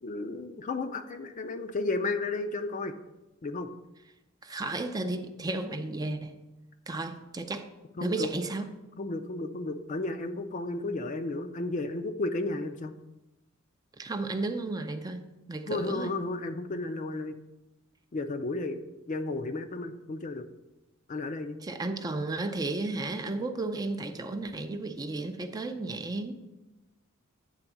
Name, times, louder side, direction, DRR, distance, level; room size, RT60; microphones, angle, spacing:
voice 1, 0.0-2.9 3.4-3.7 8.0-8.3 9.0-12.9 15.7-17.4 18.1-20.5 21.1-21.6, left 2 dB, 35° left, 8 dB, 0.4 m, -33 dB
voice 2, 4.4-6.4 6.9-7.7 8.0-8.7 14.0-15.2 15.5-16.1 21.6-26.4, right 2 dB, 20° right, 7 dB, 0.4 m, -33 dB
8.9 x 3.5 x 6.0 m, 1.0 s
head